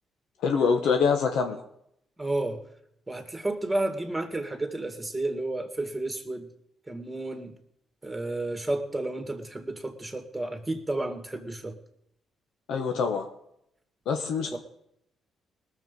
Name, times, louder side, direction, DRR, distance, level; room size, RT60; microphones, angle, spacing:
voice 1, 0.4-1.6 12.7-13.3 14.1-14.5, left 5 dB, 80° left, 4 dB, 1.3 m, -25 dB
voice 2, 2.2-2.6 3.1-6.5 6.9-7.5 8.0-11.8 14.5-14.6, right 2 dB, 10° right, 5 dB, 2.2 m, -31 dB
19.5 x 7.3 x 5.4 m, 0.74 s
cardioid pair, 90°, 0 cm